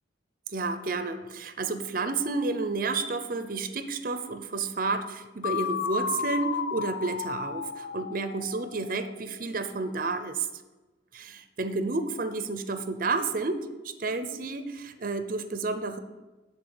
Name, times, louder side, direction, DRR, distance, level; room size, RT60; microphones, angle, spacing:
voice 1, 0.5-10.5 11.1-16.0, right 3 dB, 50° right, 9 dB, 0.6 m, -31 dB
sound 1, 5.4-9.3, left 6 dB, 70° left, 0.4 m, -33 dB
10.0 x 4.3 x 7.0 m, 1.2 s
head